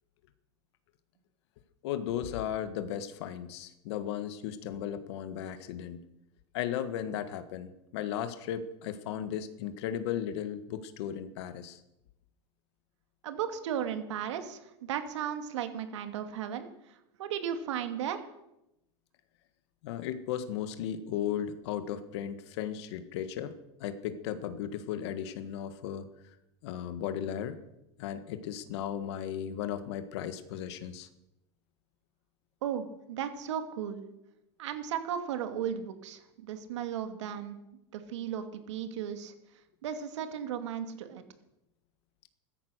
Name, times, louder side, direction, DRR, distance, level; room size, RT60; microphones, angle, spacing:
voice 1, 1.8-6.0 6.5-11.8 19.8-26.1 26.6-27.6 28.0-31.1, left 9 dB, 65° left, 10 dB, 1.6 m, -36 dB
voice 2, 13.2-18.2 32.6-34.0 34.6-37.6 37.9-39.3 39.8-41.2, right 9 dB, 85° right, 8 dB, 2.5 m, -35 dB
15.5 x 13.5 x 6.6 m, 0.88 s
supercardioid pair, 145°, 15 cm